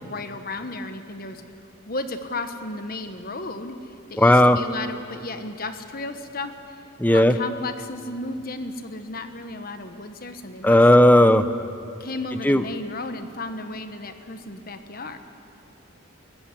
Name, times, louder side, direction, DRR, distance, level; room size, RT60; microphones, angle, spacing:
voice 1, 0.0-1.4 1.9-6.8 7.1-10.8 12.0-15.2, left 2 dB, 45° left, 8 dB, 1.3 m, -34 dB
voice 2, 4.2-4.6 7.0-7.3 10.6-11.4 12.4-12.6, left 1 dB, 10° left, 11 dB, 0.7 m, -14 dB
21.5 x 15.0 x 9.9 m, 2.6 s
head